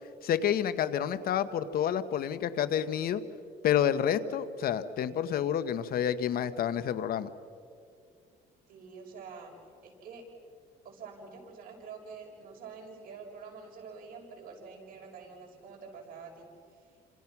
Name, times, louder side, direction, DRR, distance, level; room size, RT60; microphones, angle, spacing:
voice 1, 0.2-3.2 3.6-7.3, left 9 dB, 65° left, 13 dB, 1.2 m, -29 dB
voice 2, 8.7-9.5 9.8-10.2 10.8-16.5, right 5 dB, 60° right, 0 dB, 6.7 m, -47 dB
29.0 x 27.0 x 6.1 m, 2.3 s
cardioid pair, 110°, 17 cm